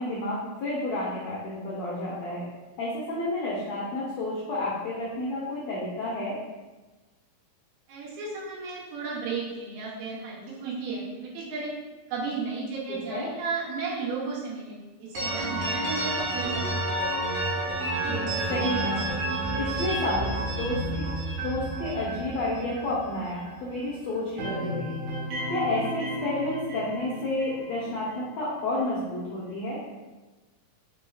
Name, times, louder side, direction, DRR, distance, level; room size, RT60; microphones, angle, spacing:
voice 1, 0.0-2.4 2.8-6.4 12.9-13.3 18.0-19.1 19.6-21.1 21.4-24.9 25.5-29.8, left 2 dB, 90° left, -6 dB, 1.5 m, -30 dB
voice 2, 7.9-11.7 12.1-17.0, right 4 dB, 80° right, -5 dB, 2.9 m, -34 dB
sound 1, 15.1-23.9 24.2-28.3, right 2 dB, 60° right, 2.1 m, -31 dB
6.6 x 3.3 x 2.3 m, 1.2 s
omnidirectional pair, 4.2 m